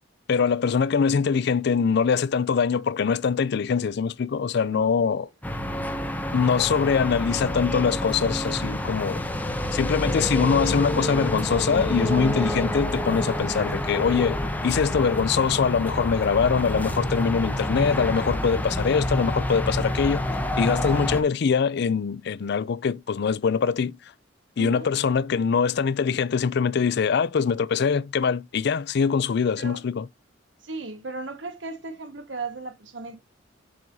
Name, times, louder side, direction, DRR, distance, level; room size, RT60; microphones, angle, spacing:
voice 1, 0.3-5.3 6.3-9.2 9.7-24.0 24.6-30.1, left 6 dB, 60° left, 0.4 m, -23 dB
voice 2, 4.7-5.2 24.6-24.9 29.6-29.8 30.6-33.2, right 3 dB, 65° right, 1.4 m, -36 dB
sound 1, 5.4-21.2, left 1 dB, 10° left, 0.8 m, -28 dB
7.6 x 5.4 x 2.7 m
head